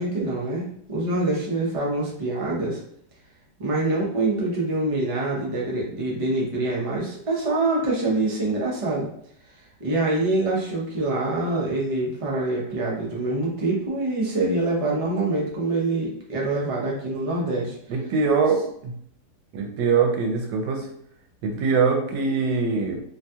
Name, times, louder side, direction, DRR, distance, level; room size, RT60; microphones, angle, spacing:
voice 1, 0.0-2.8 3.6-9.1 9.8-17.8, right 2 dB, 50° right, -4 dB, 0.4 m, -25 dB
voice 2, 17.9-18.9 19.5-20.9 21.4-23.0, right 5 dB, 80° right, 2 dB, 1.3 m, -23 dB
3.1 x 2.3 x 2.7 m, 0.68 s
omnidirectional pair, 1.9 m